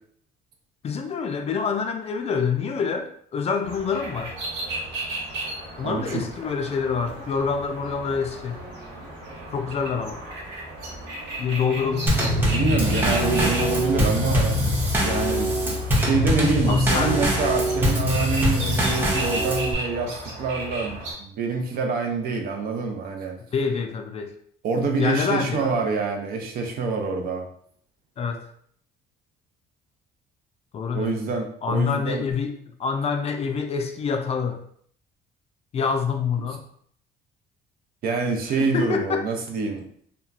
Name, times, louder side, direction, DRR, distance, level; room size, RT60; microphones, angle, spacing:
voice 1, 0.8-4.3 5.8-8.6 9.5-10.2 11.4-12.6 16.7-17.3 23.5-24.3 25.0-25.7 28.2-28.4 30.7-31.1 31.6-32.5 32.8-34.6 35.7-36.6 38.6-39.3, left 5 dB, 40° left, 5 dB, 0.4 m, -26 dB
sound 1, 3.6-21.1, right 1 dB, 90° right, 1.1 m, -34 dB
voice 2, 5.8-6.2 12.5-23.4 24.6-27.4 30.9-32.2 38.0-39.8, right 4 dB, 65° right, 3 dB, 0.6 m, -26 dB
Drum kit / Snare drum / Bass drum, 12.1-19.7, equal, 10° right, 0.6 m, -23 dB
2.9 x 2.2 x 2.4 m, 0.62 s
cardioid pair, 110°, 17 cm